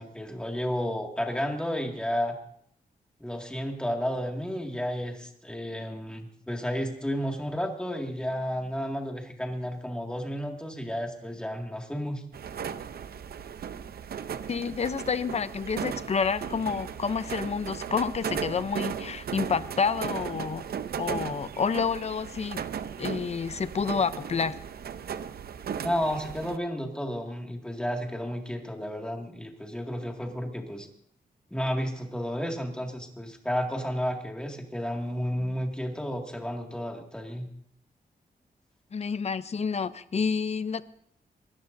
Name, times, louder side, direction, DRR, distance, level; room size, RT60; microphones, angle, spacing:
voice 1, 0.0-2.4 3.2-12.2 25.8-30.9 31.5-37.5, equal, 5° left, 2 dB, 2.1 m, -32 dB
sound 1, 12.3-26.6, right 7 dB, 80° right, 0.7 m, -36 dB
voice 2, 14.5-20.7 21.0-22.6 23.0-24.6 38.9-40.8, left 5 dB, 45° left, 14 dB, 0.6 m, -29 dB
23.0 x 17.5 x 2.7 m, 0.66 s
wide cardioid pair, 120°, 16 cm